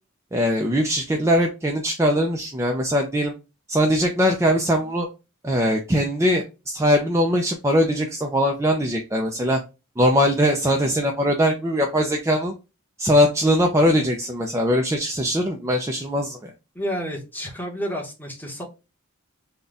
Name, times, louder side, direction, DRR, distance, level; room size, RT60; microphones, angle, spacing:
voice 1, 0.3-3.3 3.7-5.1 5.4-9.6 10.0-12.5 13.0-16.5, equal, 15° right, 2 dB, 0.4 m, -21 dB
voice 2, 16.7-18.6, equal, 10° left, 0 dB, 1.0 m, -30 dB
4.0 x 2.2 x 3.6 m, 0.28 s
head